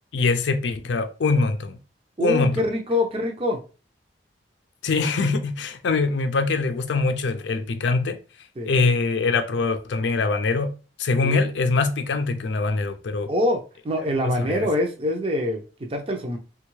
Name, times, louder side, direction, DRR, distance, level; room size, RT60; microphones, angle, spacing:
voice 1, 0.1-1.8 2.2-2.6 4.8-8.2 8.6-10.7 11.0-13.3 14.2-14.7, left 3 dB, 75° left, 0.4 m, -23 dB
voice 2, 2.2-3.6 8.6-8.7 11.2-11.4 13.3-16.4, left 1 dB, 30° right, 0.6 m, -25 dB
3.3 x 2.4 x 3.1 m
head